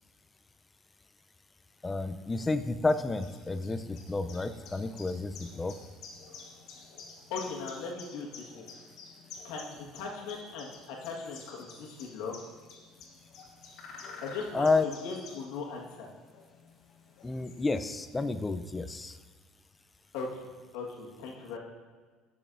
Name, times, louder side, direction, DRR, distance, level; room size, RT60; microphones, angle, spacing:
voice 1, 1.8-5.7 14.5-14.8 17.2-19.2, left 3 dB, 15° left, 10 dB, 0.3 m, -30 dB
sound 1, 1.9-18.5, left 4 dB, 60° left, 1.3 m, -51 dB
voice 2, 7.3-8.7 9.4-12.4 14.2-16.1 20.1-20.4 20.7-21.6, left 4 dB, 85° left, -1 dB, 1.4 m, -39 dB
12.0 x 6.0 x 2.5 m, 1.5 s
cardioid pair, 140°, 0 cm